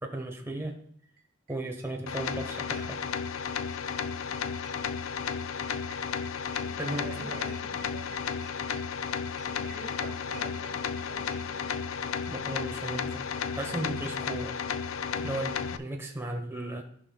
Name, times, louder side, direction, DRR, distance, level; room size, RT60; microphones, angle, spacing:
voice 1, 0.0-0.8 1.5-3.0 6.8-7.3 12.3-13.2 13.5-14.6 15.2-16.8, right 1 dB, 15° right, 3 dB, 0.9 m, -35 dB
sound 1, 1.2-1.3 1.5-1.6 1.8-3.4 3.7-12.9 13.2-13.3 13.5-13.6 13.8-13.9, right 3 dB, 45° right, 2.0 m, -53 dB
sound 2, 2.1-15.8, left 6 dB, 85° left, 0.4 m, -33 dB
voice 2, 6.6-8.4 9.5-11.7, right 2 dB, 75° right, 0 dB, 1.9 m, -46 dB
15.5 x 5.6 x 2.3 m, 0.65 s
head